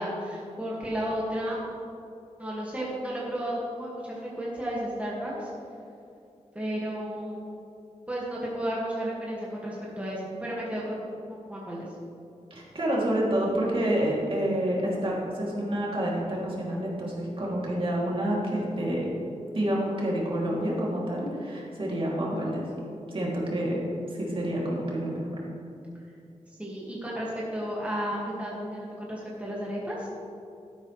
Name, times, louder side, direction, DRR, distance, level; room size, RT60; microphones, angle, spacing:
voice 1, 0.0-1.6 2.4-5.5 6.5-7.4 8.1-11.8 26.6-30.1, equal, 10° right, -6 dB, 2.0 m, -33 dB
voice 2, 12.5-19.1 19.5-22.7 23.1-23.8 24.1-25.3, right 1 dB, 45° right, -5 dB, 2.9 m, -28 dB
12.5 x 11.0 x 3.3 m, 2.6 s
wide cardioid pair, 105°, 13 cm